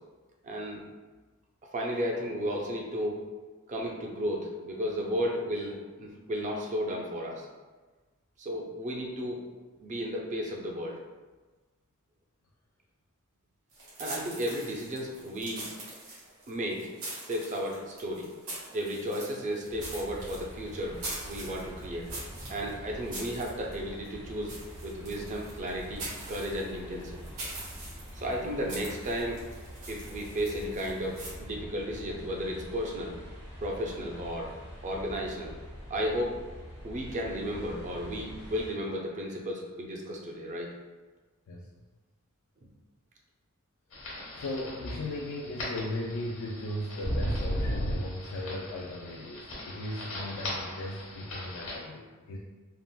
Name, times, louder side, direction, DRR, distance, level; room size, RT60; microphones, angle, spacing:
voice 1, 0.4-0.8 1.7-3.2 3.7-7.5 8.4-9.4 9.8-11.0 14.0-15.7 16.5-16.9 17.2-18.3 18.7-22.1 22.5-24.5 24.8-27.2 28.1-29.4 29.9-33.1 33.6-34.5 34.8-35.5 35.9-36.4 36.8-40.7, equal, 35° right, -1 dB, 0.4 m, -34 dB
sound 1, 13.7-31.3, right 2 dB, 80° right, 1.2 m, -43 dB
sound 2, 19.7-38.7, equal, 65° right, 0.8 m, -45 dB
sound 3, 43.9-51.8, equal, 65° left, 0.9 m, -36 dB
voice 2, 44.0-52.4, left 1 dB, 80° left, -2 dB, 0.3 m, -37 dB
3.6 x 2.0 x 2.3 m, 1.3 s
head